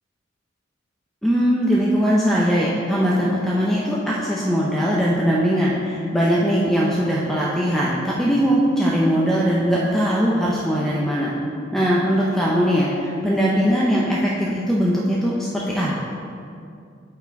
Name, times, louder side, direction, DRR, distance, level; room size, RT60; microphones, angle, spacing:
voice 1, 1.2-11.3 11.7-16.0, equal, ahead, -6 dB, 0.6 m, -20 dB
8.1 x 4.3 x 4.6 m, 2.4 s
head